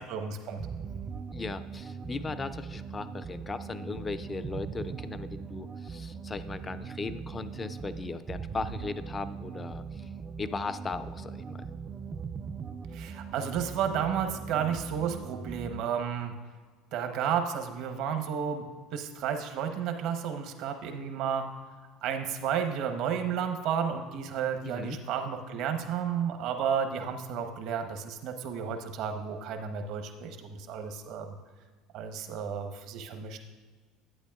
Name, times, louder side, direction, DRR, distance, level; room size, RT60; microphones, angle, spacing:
voice 1, 0.1-0.6 12.9-16.3 16.9-18.6 18.9-21.5 22.0-31.4 31.9-33.4, right 7 dB, 65° right, 6 dB, 0.9 m, -32 dB
sound 1, 0.6-16.0, right 6 dB, 30° right, 0.4 m, -40 dB
voice 2, 1.3-10.1 10.4-11.6 24.6-25.0, left 4 dB, 25° left, 12 dB, 0.5 m, -37 dB
11.0 x 8.4 x 2.4 m, 1.5 s
supercardioid pair, 90°, 0 cm